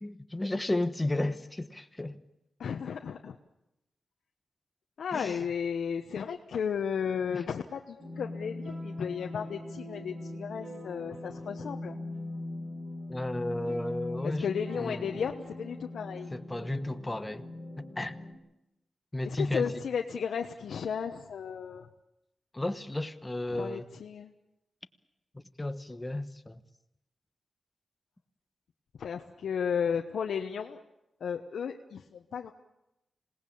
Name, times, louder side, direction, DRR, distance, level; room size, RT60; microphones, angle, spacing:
voice 1, 0.0-2.2 5.1-5.5 7.3-7.4 13.1-14.5 14.8-15.1 16.3-17.4 17.8-18.2 19.1-19.7 22.5-23.8 25.3-26.6, left 1 dB, 15° left, 1.1 m, -33 dB
voice 2, 2.6-3.4 5.0-12.0 14.2-16.3 19.2-21.9 23.5-24.3 29.0-30.8 31.2-32.5, left 7 dB, 90° left, 1.1 m, -34 dB
sound 1, 8.0-18.3, left 2 dB, 35° right, 5.7 m, -41 dB
27.0 x 18.5 x 8.6 m
wide cardioid pair, 155°, 0 cm